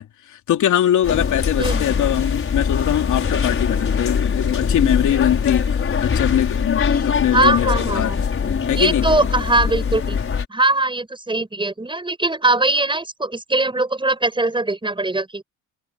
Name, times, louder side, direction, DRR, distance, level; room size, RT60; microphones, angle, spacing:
voice 1, 0.0-8.1 8.7-9.0, left 11 dB, 75° left, 3.5 m, -22 dB
sound 1, 1.0-10.4, left 6 dB, 45° left, 6.0 m, -22 dB
voice 2, 7.3-8.2 8.7-10.2 10.5-15.4, right 2 dB, 15° right, 7.9 m, -21 dB
cardioid pair, 90°, 30 cm